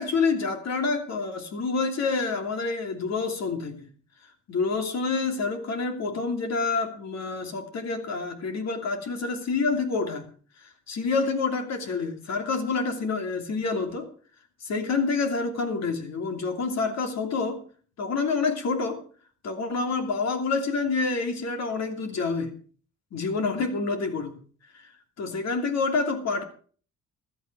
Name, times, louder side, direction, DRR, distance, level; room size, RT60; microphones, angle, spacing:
voice 1, 0.0-3.9 4.5-10.2 10.6-14.1 14.6-17.6 18.0-19.0 19.4-22.5 23.1-24.4 24.7-24.9 25.2-26.4, left 4 dB, 60° left, 5 dB, 2.9 m, -28 dB
15.0 x 12.0 x 4.7 m, 0.43 s
cardioid pair, 90°, 30 cm